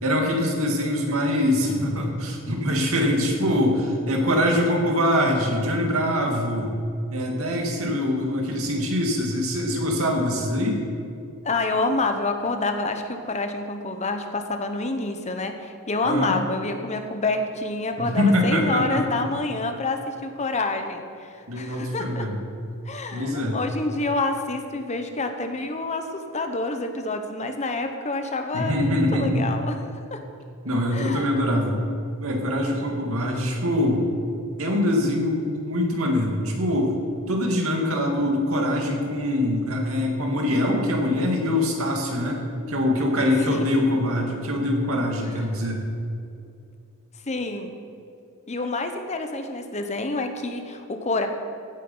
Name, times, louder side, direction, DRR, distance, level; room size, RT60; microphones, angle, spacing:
voice 1, 0.0-6.7 7.1-10.8 16.0-16.4 18.0-19.0 21.5-22.4 23.1-23.6 28.5-29.5 30.6-31.8 32.2-34.0 34.6-36.9 37.3-42.4 42.7-45.8, left 1 dB, 75° right, 1 dB, 2.3 m, -23 dB
voice 2, 11.4-22.3 22.9-29.8 30.1-30.2 30.9-31.3 47.3-47.7 48.5-51.3, left 2 dB, 30° left, 6 dB, 0.9 m, -28 dB
15.5 x 8.2 x 5.5 m, 2.5 s
head